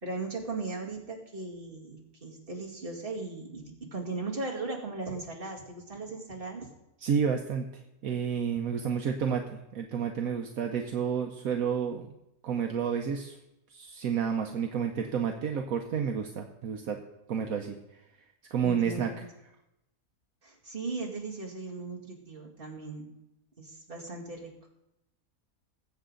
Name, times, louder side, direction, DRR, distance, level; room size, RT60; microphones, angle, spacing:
voice 1, 0.0-6.7 18.6-19.3 20.4-23.1 23.6-24.5, right 3 dB, 35° right, -2 dB, 2.5 m, -38 dB
voice 2, 7.0-7.7 8.0-12.1 12.4-13.4 13.7-17.0 17.3-18.0 18.5-19.1, right 7 dB, 70° right, 3 dB, 1.3 m, -30 dB
20.5 x 8.1 x 3.8 m, 0.88 s
omnidirectional pair, 1.6 m